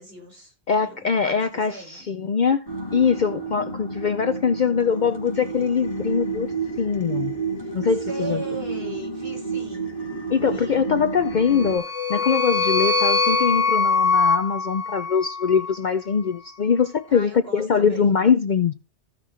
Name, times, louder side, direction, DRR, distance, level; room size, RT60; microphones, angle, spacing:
voice 1, 0.0-0.5 0.8-2.0 7.6-7.7 8.1-9.9 10.4-10.8 17.1-18.1, right 2 dB, 55° right, 5.3 m, -38 dB
voice 2, 0.7-2.6 2.9-6.5 6.8-7.3 7.7-8.4 10.3-18.7, left 6 dB, 55° left, 0.6 m, -22 dB
sound 1, 2.7-11.8, right 4 dB, 30° left, 2.4 m, -30 dB
sound 2, 11.4-15.8, left 4 dB, 85° left, 1.8 m, -22 dB
15.0 x 6.0 x 3.1 m
omnidirectional pair, 1.2 m